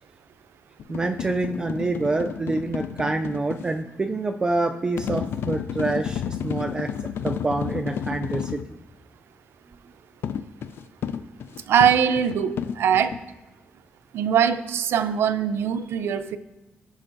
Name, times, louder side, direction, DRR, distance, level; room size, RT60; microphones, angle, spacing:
sound 1, 0.8-3.7 5.0-8.7 10.2-13.2, left 8 dB, 70° left, 0.4 m, -31 dB
voice 1, 0.9-6.9 7.2-8.8, right 2 dB, 20° right, 5 dB, 0.3 m, -27 dB
voice 2, 11.7-13.2 14.1-16.4, right 8 dB, 85° right, 12 dB, 0.5 m, -22 dB
16.0 x 6.3 x 2.6 m, 1.1 s
wide cardioid pair, 180°, 4 cm